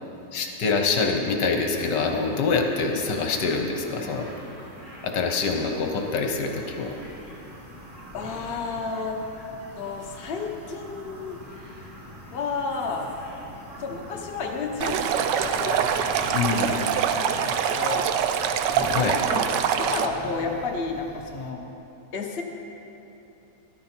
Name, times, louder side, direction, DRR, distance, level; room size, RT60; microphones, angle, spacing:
voice 1, 0.3-4.3 5.0-6.9 16.3-16.7 18.9-19.2, left 4 dB, 75° left, 3 dB, 1.5 m, -25 dB
sound 1, 1.7-17.5, equal, 30° right, 1.7 m, -45 dB
sound 2, 5.7-21.5, left 1 dB, 20° left, 0.8 m, -44 dB
voice 2, 8.1-9.2 9.7-11.4 12.3-13.1 13.8-15.9 16.4-18.1 19.3-19.5 19.8-21.6 22.1-22.4, left 4 dB, 40° left, 1 dB, 1.1 m, -32 dB
Stream, 14.8-20.1, right 8 dB, 85° right, 1.3 m, -24 dB
13.5 x 11.5 x 4.4 m, 3.0 s
omnidirectional pair, 1.9 m